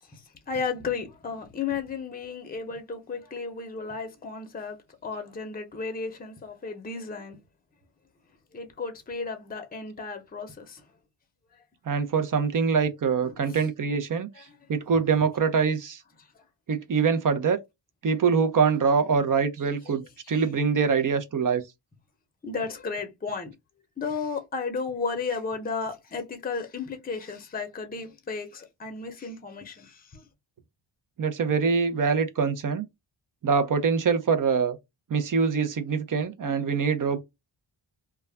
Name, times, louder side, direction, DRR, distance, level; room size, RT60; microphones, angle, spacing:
voice 1, 0.0-7.4 8.5-10.9 13.2-13.6 14.3-14.6 16.3-16.4 20.2-20.4 22.4-23.5 24.0-30.3, left 4 dB, 20° left, 0.6 m, -34 dB
voice 2, 11.9-16.0 16.7-17.6 18.0-21.6 31.2-32.8 33.4-34.8 35.1-37.2, right 5 dB, 45° right, 0.6 m, -24 dB
2.3 x 2.1 x 3.3 m
wide cardioid pair, 105°, 47 cm